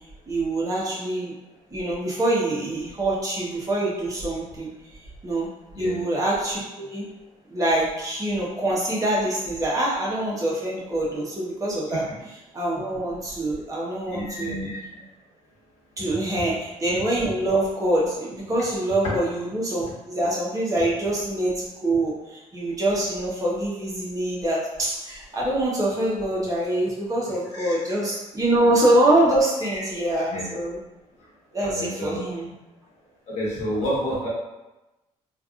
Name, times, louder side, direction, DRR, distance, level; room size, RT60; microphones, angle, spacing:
voice 1, 0.3-1.3 1.7-4.7 5.2-5.5 5.8-7.1 7.5-12.0 12.3-14.6 16.0-30.8 31.5-32.5, right 1 dB, 30° right, -6 dB, 1.1 m, -25 dB
voice 2, 14.1-15.0 27.5-27.7 29.6-29.8 30.3-30.5 31.6-32.2 33.3-34.3, equal, 65° left, -6 dB, 1.3 m, -30 dB
3.3 x 2.5 x 2.4 m, 1.0 s
cardioid pair, 90°, 12 cm